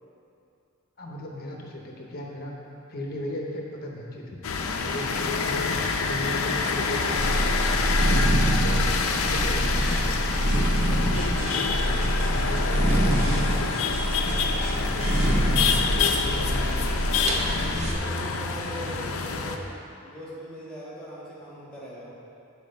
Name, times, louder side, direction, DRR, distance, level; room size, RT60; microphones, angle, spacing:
voice 1, 1.0-2.6 2.9-5.7 6.0-7.4 7.7-10.1 10.4-13.9 14.5-15.6 16.0-16.7 17.0-17.5, left 1 dB, 45° left, -1 dB, 0.8 m, -36 dB
sound 1, 4.4-19.6, left 4 dB, 70° left, 0.5 m, -27 dB
sound 2, 7.1-17.9, equal, 30° right, 0.7 m, -25 dB
sound 3, 9.3-15.4, right 1 dB, 75° right, 1.3 m, -41 dB
voice 2, 17.9-19.6 20.0-22.1, right 1 dB, 5° left, -8 dB, 1.7 m, -40 dB
7.1 x 4.7 x 5.3 m, 2.6 s
head